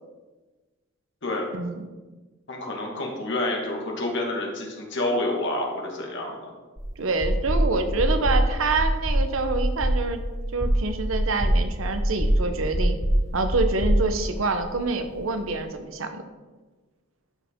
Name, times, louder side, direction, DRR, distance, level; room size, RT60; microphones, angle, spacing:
voice 1, 1.5-1.9 7.0-10.2 10.5-13.0 13.3-16.2, right 3 dB, 85° right, 8 dB, 0.9 m, -26 dB
voice 2, 2.5-6.5, left 2 dB, 60° left, 0 dB, 1.8 m, -28 dB
sound 1, 6.8-6.9 7.2-7.6 8.0-8.4 8.8-9.2 9.5-10.0 10.4-10.8 11.1-11.6 11.9-12.4 12.7-13.2 13.5-14.7, right 1 dB, 40° right, 2.4 m, -22 dB
12.0 x 5.0 x 3.7 m, 1.2 s
head